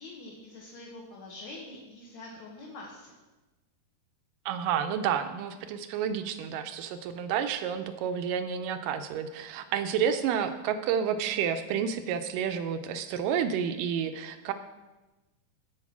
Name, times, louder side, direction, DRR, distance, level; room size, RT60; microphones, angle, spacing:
voice 1, 0.0-3.1, left 2 dB, 60° left, -3 dB, 2.3 m, -45 dB
voice 2, 4.5-14.5, right 8 dB, 80° right, 9 dB, 2.1 m, -30 dB
13.5 x 4.7 x 5.9 m, 1.1 s
omnidirectional pair, 4.1 m